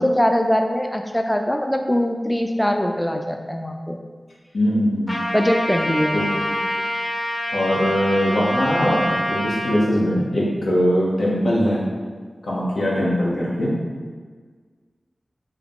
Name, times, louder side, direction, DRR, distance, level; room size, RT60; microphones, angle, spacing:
voice 1, 0.0-4.0 5.3-6.2, equal, 10° left, 4 dB, 0.3 m, -21 dB
voice 2, 4.5-5.2 6.1-6.5 7.5-11.8 12.4-13.7, equal, 90° left, -5 dB, 0.9 m, -21 dB
Trumpet, 5.1-9.7, equal, 35° left, 0.8 m, -26 dB
3.6 x 2.8 x 3.6 m, 1.6 s
wide cardioid pair, 50°, 0 cm